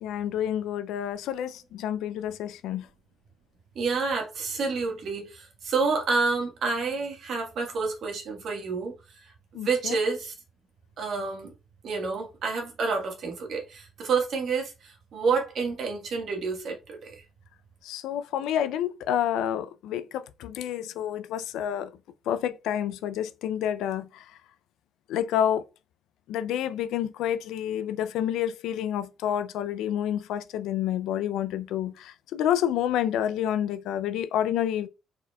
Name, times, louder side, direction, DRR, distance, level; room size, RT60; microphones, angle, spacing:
voice 1, 0.0-2.9 9.5-10.0 17.8-21.9 22.3-24.2 25.1-25.6 26.3-34.9, left 10 dB, 90° left, 0.4 m, -29 dB
voice 2, 3.7-8.9 9.2-9.3 9.6-10.3 11.0-11.5 11.8-17.2, right 4 dB, 65° right, 1.4 m, -29 dB
4.3 x 4.1 x 2.3 m
cardioid pair, 90°, 0 cm